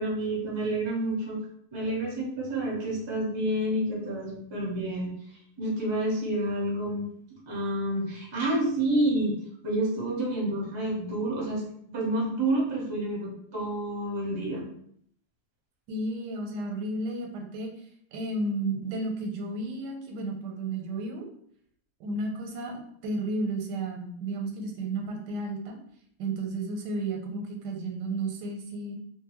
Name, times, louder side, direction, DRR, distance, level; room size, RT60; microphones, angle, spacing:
voice 1, 0.0-1.4 1.7-5.1 5.6-7.1 7.5-9.3 9.6-11.6 11.9-14.7, right 1 dB, 45° right, -3 dB, 0.3 m, -29 dB
voice 2, 15.9-17.7 18.1-21.3 22.0-25.8 26.2-29.0, right 2 dB, 90° right, 2 dB, 1.2 m, -32 dB
2.6 x 2.6 x 2.9 m, 0.67 s
omnidirectional pair, 1.8 m